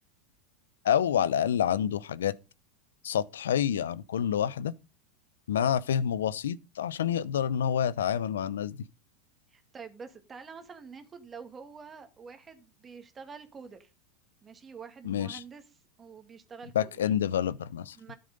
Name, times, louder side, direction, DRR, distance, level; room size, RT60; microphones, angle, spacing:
voice 1, 0.8-2.3 3.0-4.7 5.5-8.9 15.0-15.4 16.7-18.0, left 9 dB, 75° left, 0.7 m, -28 dB
voice 2, 9.5-13.9 14.4-16.9 17.9-18.1, right 5 dB, 25° right, 2.1 m, -47 dB
13.0 x 7.8 x 5.3 m
hypercardioid pair, 95°, 0 cm